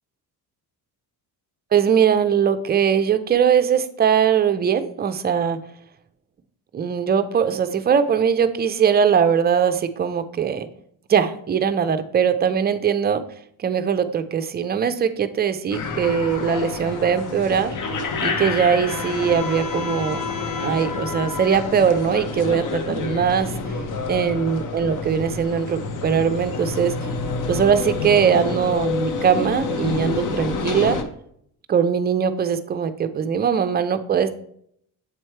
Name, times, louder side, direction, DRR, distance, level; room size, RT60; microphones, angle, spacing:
voice 1, 1.7-5.6 6.7-10.7 11.1-13.2 13.6-17.8 18.2-20.3 20.6-23.5 24.1-26.9 27.5-31.0 31.7-34.3, right 7 dB, 25° right, 10 dB, 0.4 m, -21 dB
sound 1, 15.7-31.0, left 4 dB, 50° left, 0.7 m, -28 dB
7.9 x 3.1 x 4.4 m, 0.68 s
cardioid pair, 135°, 39 cm